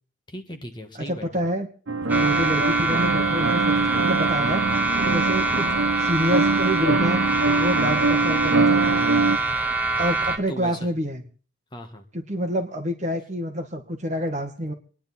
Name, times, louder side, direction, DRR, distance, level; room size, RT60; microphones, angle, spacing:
voice 1, 0.3-1.5 2.3-2.5 5.1-5.3 7.9-8.0 10.5-10.8 11.7-12.0, equal, 25° left, 4 dB, 1.6 m, -38 dB
voice 2, 0.9-1.7 2.1-4.6 5.0-5.7 6.0-7.2 7.5-9.1 10.0-11.2 12.1-14.7, equal, 35° right, 4 dB, 1.9 m, -27 dB
sound 1, 1.9-9.4, right 3 dB, 90° right, 1.0 m, -23 dB
sound 2, 2.1-10.4, right 3 dB, 10° right, 1.5 m, -24 dB
28.0 x 10.0 x 4.2 m, 0.39 s
head